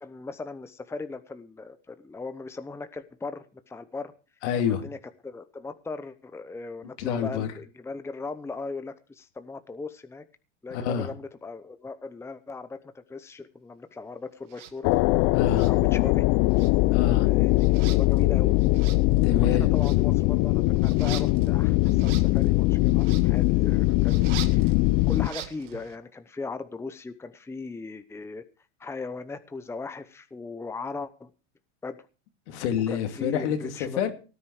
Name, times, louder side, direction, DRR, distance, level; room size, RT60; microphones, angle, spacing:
voice 1, 0.0-4.1 4.6-5.0 5.2-10.2 10.6-14.9 15.7-16.3 17.3-18.6 19.4-24.7 25.1-28.4 28.8-31.3 31.8-32.0 32.9-34.0, left 3 dB, 5° left, 0.8 m, -38 dB
voice 2, 4.4-4.9 7.0-7.5 10.7-11.1 15.3-15.7 16.9-17.3 19.2-19.7 32.5-34.1, left 8 dB, 70° left, 2.8 m, -28 dB
sound 1, 14.5-14.7 15.5-16.2 16.5-26.0, right 11 dB, 85° right, 1.9 m, -44 dB
sound 2, 14.8-25.3, left 20 dB, 50° left, 0.6 m, -21 dB
18.0 x 9.8 x 4.9 m
supercardioid pair, 115°, 35 cm